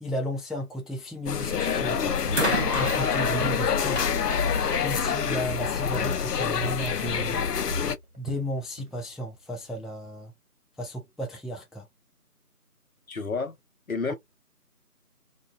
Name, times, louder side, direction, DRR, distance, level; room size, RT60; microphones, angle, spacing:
voice 1, 0.0-2.2 2.7-4.0 4.8-7.4 8.2-10.3 10.8-11.9 14.1-14.2, equal, ahead, 0.4 m, -34 dB
sound 1, 1.3-8.0, left 7 dB, 90° left, 0.6 m, -26 dB
sound 2, 1.4-1.7 2.3-5.6 6.6-6.7, right 1 dB, 45° right, 0.6 m, -33 dB
Walk footsteps, 2.3-3.6 3.9-5.2 5.5-9.0 9.3-9.6 10.0-10.1, left 1 dB, 70° right, 1.2 m, -38 dB
voice 2, 13.1-13.6 13.9-14.1, left 4 dB, 65° left, 0.8 m, -30 dB
2.5 x 2.2 x 2.5 m
figure-of-eight pair, 170°, 46 cm